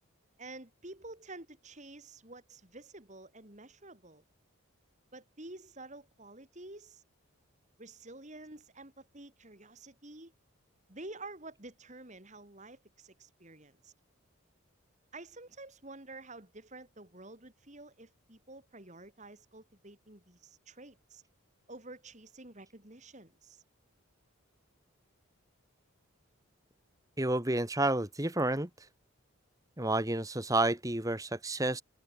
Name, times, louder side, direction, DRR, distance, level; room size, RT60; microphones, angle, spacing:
voice 1, 0.4-4.2 5.1-7.0 7.8-10.3 10.9-13.9 15.1-21.2 21.7-23.6, right 2 dB, 35° right, 3.2 m, -50 dB
voice 2, 27.2-28.7 29.8-31.8, right 2 dB, 15° right, 1.6 m, -30 dB
head